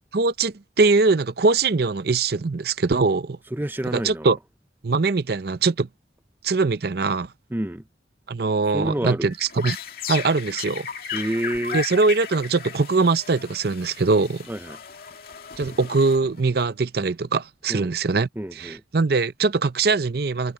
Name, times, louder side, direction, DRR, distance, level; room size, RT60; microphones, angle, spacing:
voice 1, 0.1-3.4 3.9-4.4 4.8-5.9 6.4-7.3 8.3-9.8 10.1-10.9 11.7-14.5 15.6-18.3 18.5-20.5, right 4 dB, 55° right, 0.6 m, -22 dB
voice 2, 3.5-4.3 7.5-7.8 8.7-9.3 11.1-11.8 14.5-14.8 17.7-17.9 18.4-18.8, right 1 dB, 10° right, 0.5 m, -28 dB
sound 1, 9.3-16.6, left 7 dB, 55° left, 2.2 m, -35 dB
head